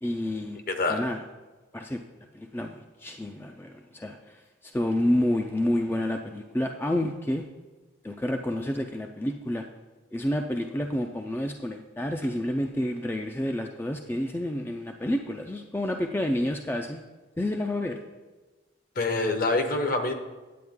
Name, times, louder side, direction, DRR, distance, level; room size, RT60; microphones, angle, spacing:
voice 1, 0.0-0.6 0.9-1.2 1.7-2.0 2.3-7.5 8.0-9.7 10.1-17.0 17.4-18.0, left 1 dB, 10° left, 4 dB, 0.3 m, -29 dB
voice 2, 0.7-1.0 19.0-20.1, left 2 dB, 50° left, 7 dB, 0.9 m, -25 dB
9.4 x 8.3 x 3.6 m, 1.2 s
head